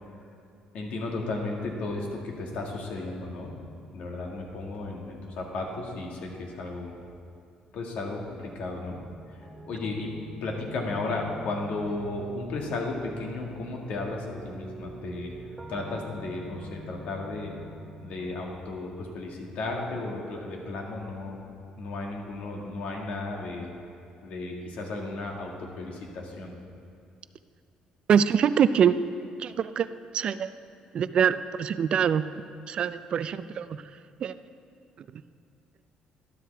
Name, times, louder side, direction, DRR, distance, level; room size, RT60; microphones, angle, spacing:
voice 1, 0.7-3.5 3.9-6.9 7.7-9.0 9.6-15.3 15.7-17.5 18.0-21.4 21.8-23.7 24.2-26.5, left 2 dB, 70° left, 0 dB, 1.8 m, -34 dB
sound 1, 9.4-18.4, right 1 dB, 5° right, 1.1 m, -44 dB
voice 2, 28.1-28.9 29.4-29.9 30.1-30.5 30.9-32.2 32.7-33.8 34.2-34.3 35.1-35.2, right 8 dB, 45° right, 13 dB, 0.3 m, -24 dB
12.5 x 11.5 x 3.4 m, 2.5 s
cardioid pair, 135°, 2 cm